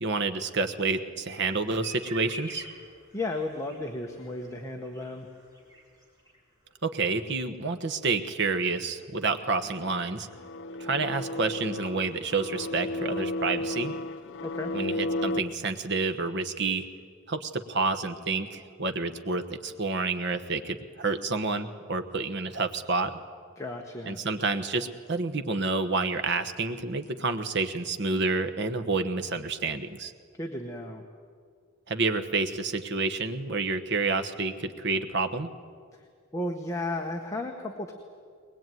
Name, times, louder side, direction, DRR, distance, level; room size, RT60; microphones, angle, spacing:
voice 1, 0.0-2.6 6.8-10.3 10.8-13.9 14.7-16.8 17.3-23.1 24.1-30.1 31.9-35.5, right 3 dB, 55° right, 8 dB, 1.2 m, -29 dB
sound 1, 1.2-6.4 6.7-6.8 7.0-7.1, right 1 dB, 20° right, 4.3 m, -47 dB
voice 2, 3.1-5.3 14.4-14.7 23.6-24.2 30.4-31.0 36.3-37.9, left 2 dB, 15° left, 2 dB, 1.4 m, -34 dB
sound 2, 9.4-15.4, left 1 dB, 60° left, 0.6 m, -33 dB
21.5 x 20.5 x 9.3 m, 2.1 s
head